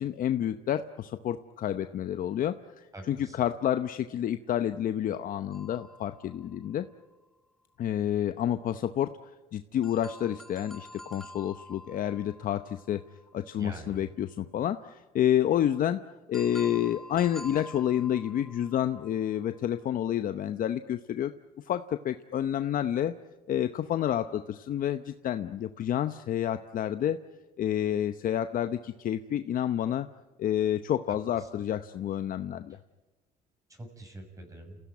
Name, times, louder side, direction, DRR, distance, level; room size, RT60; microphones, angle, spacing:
voice 1, 0.0-6.9 7.8-9.2 9.5-13.0 13.3-16.0 16.3-21.3 21.6-23.1 23.5-27.2 27.6-30.1 30.4-32.8, left 10 dB, 55° left, 10 dB, 0.8 m, -29 dB
voice 2, 2.9-3.4 13.6-14.0 31.1-31.5 32.7-32.8 33.7-34.8, right 1 dB, 20° right, 4 dB, 6.5 m, -45 dB
sound 1, 5.5-7.2 9.8-13.7 16.3-19.8, left 1 dB, ahead, 1.8 m, -48 dB
29.5 x 16.0 x 9.5 m, 1.2 s
cardioid pair, 110°, 17 cm